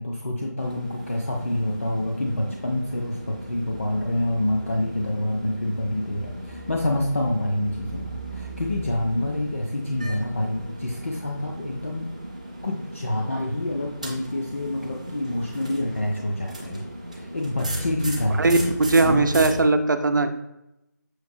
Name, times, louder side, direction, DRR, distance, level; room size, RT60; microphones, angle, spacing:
voice 1, 0.0-12.1 12.6-16.9 17.1-18.5 19.0-19.3, left 1 dB, 45° left, 0 dB, 0.4 m, -27 dB
sound 1, 0.6-19.6, right 1 dB, 20° right, 0.4 m, -37 dB
voice 2, 18.4-20.3, right 3 dB, 80° right, 7 dB, 0.5 m, -19 dB
5.8 x 2.7 x 2.6 m, 0.88 s
figure-of-eight pair, 175°, 10 cm